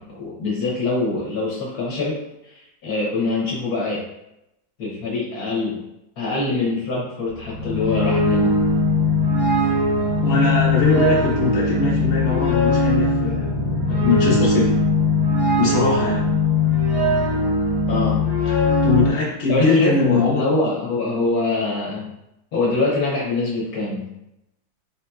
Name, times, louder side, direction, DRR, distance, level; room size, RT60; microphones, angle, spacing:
voice 1, 0.1-2.2 2.4-4.0 4.8-5.8 6.2-8.6 17.9-18.2 19.5-22.1 22.5-24.1, left 2 dB, 60° left, -4 dB, 1.2 m, -24 dB
sound 1, 7.3-19.1, left 2 dB, 15° left, 0.9 m, -20 dB
voice 2, 10.2-14.7 15.6-16.3 18.8-20.5, left 4 dB, 40° left, -6 dB, 0.7 m, -21 dB
3.8 x 2.7 x 2.3 m, 0.85 s
omnidirectional pair, 2.0 m